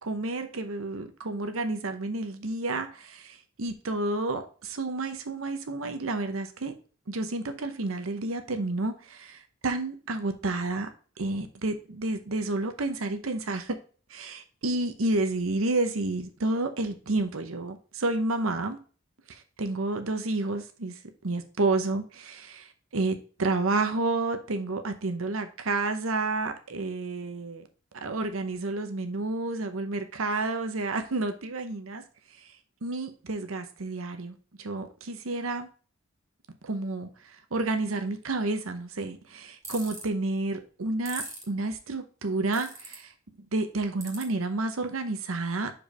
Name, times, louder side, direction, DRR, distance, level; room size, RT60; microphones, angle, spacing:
voice 1, 0.0-6.7 7.1-10.9 11.2-13.8 14.1-18.8 19.3-20.9 21.2-27.7 27.9-32.0 32.8-35.7 36.6-37.1 37.5-43.1 43.5-45.7, right 2 dB, 80° right, 0.9 m, -30 dB
sound 1, 39.6-40.0 41.1-41.4 42.5-43.0 44.0-44.2, right 2 dB, 15° right, 1.9 m, -38 dB
5.2 x 4.6 x 4.9 m
head